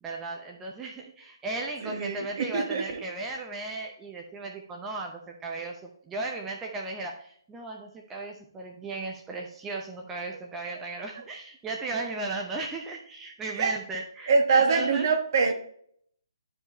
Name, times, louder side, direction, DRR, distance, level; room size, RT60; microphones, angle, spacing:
voice 1, 0.0-15.1, right 3 dB, 10° right, 0 dB, 0.7 m, -36 dB
voice 2, 1.8-3.0 11.2-11.3 13.5-13.7 14.3-15.5, right 4 dB, 45° right, 6 dB, 1.3 m, -24 dB
11.5 x 4.9 x 3.0 m, 0.64 s
figure-of-eight pair, 135°, 2 cm